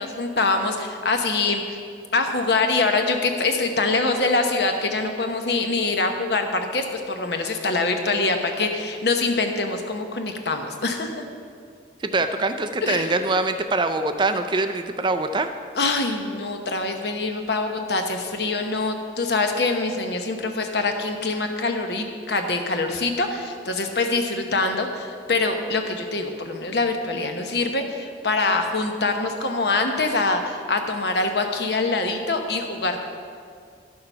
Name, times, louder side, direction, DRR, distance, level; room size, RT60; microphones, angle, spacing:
voice 1, 0.0-1.8 2.1-11.2 12.8-13.1 15.8-33.0, left 3 dB, 65° left, 5 dB, 1.0 m, -24 dB
voice 2, 12.0-15.5, right 3 dB, 25° right, 7 dB, 0.4 m, -23 dB
12.0 x 6.7 x 5.5 m, 2.2 s
head